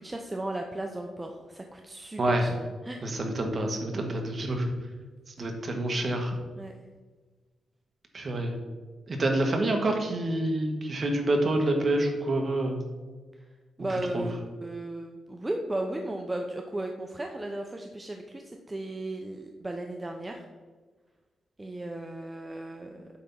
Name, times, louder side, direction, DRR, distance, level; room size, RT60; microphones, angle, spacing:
voice 1, 0.0-2.5 2.8-3.0 3.9-4.1 6.6-6.7 13.4-13.5 13.8-14.3 14.6-20.4 21.6-23.0, right 1 dB, 15° right, 3 dB, 0.6 m, -35 dB
voice 2, 2.2-2.5 3.0-4.7 5.3-6.4 8.1-8.5 9.1-12.8 14.1-14.2, right 1 dB, 40° right, 3 dB, 1.3 m, -27 dB
8.5 x 3.5 x 5.5 m, 1.4 s
cardioid pair, 105°, 0 cm